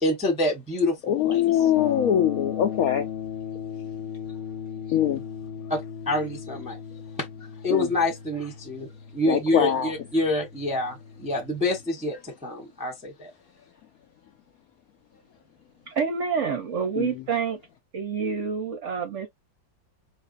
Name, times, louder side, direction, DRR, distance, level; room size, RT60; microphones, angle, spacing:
voice 1, 0.0-1.4 5.7-5.8 6.1-6.8 7.2-7.3 7.6-13.3, left 1 dB, 5° right, 0.8 m, -27 dB
voice 2, 1.1-3.1 4.9-5.2 7.7-7.9 9.3-9.9 17.0-17.1, left 10 dB, 75° left, 0.8 m, -22 dB
sound 1, 1.7-11.8, left 8 dB, 35° left, 1.1 m, -37 dB
voice 3, 15.9-17.6 17.9-19.3, right 6 dB, 55° right, 0.8 m, -27 dB
4.6 x 3.3 x 2.5 m
omnidirectional pair, 2.1 m